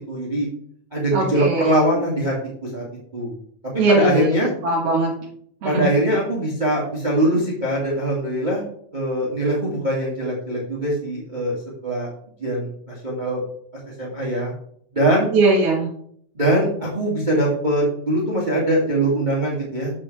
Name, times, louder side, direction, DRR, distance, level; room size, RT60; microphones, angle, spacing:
voice 1, 0.1-0.5 0.9-2.4 2.6-2.8 3.1-3.3 3.9-4.5 5.6-8.6 8.9-11.6 11.8-12.1 12.4-13.4 14.0-14.5 14.9-15.3 16.3-19.9, right 1 dB, 20° right, -5 dB, 1.7 m, -22 dB
voice 2, 1.1-1.8 3.8-4.3 4.6-5.1 5.6-5.8 15.3-15.9, right 2 dB, 55° right, -4 dB, 2.1 m, -19 dB
8.4 x 6.2 x 3.3 m, 0.64 s
omnidirectional pair, 3.5 m